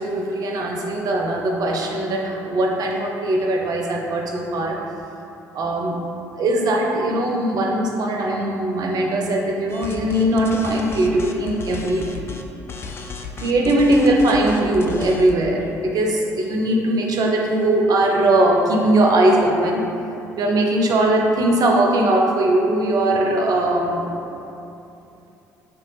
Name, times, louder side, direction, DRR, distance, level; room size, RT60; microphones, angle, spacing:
voice 1, 0.0-4.8 5.5-6.0 6.4-12.3 13.4-19.8 20.4-24.1, right 1 dB, 45° right, 0 dB, 0.5 m, -20 dB
sound 1, 9.7-12.4 12.7-15.4, left 5 dB, 30° left, 0.3 m, -34 dB
3.2 x 2.9 x 3.2 m, 2.8 s
hypercardioid pair, 55°, 9 cm